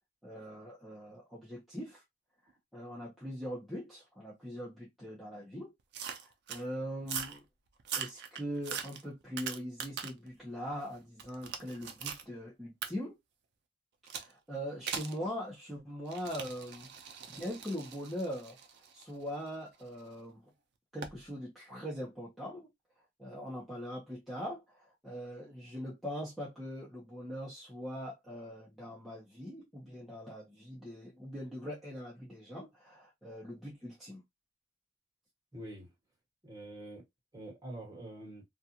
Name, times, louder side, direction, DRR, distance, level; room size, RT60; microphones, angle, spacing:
voice 1, 0.2-2.0 2.7-5.7 6.2-7.4 8.0-13.2 14.1-16.9 17.2-18.6 18.9-20.4 20.9-22.7 23.2-34.2, equal, ahead, 0.7 m, -41 dB
sound 1, 5.9-6.6 7.0-7.4 7.8-10.3 10.7-12.3 12.8-12.9 14.1-14.3 14.9-15.2 16.1-20.0 21.0-21.2, right 7 dB, 55° right, 0.5 m, -41 dB
voice 2, 35.5-35.9 36.4-37.0 37.3-38.4, right 1 dB, 20° right, 1.3 m, -45 dB
2.4 x 2.4 x 2.8 m
head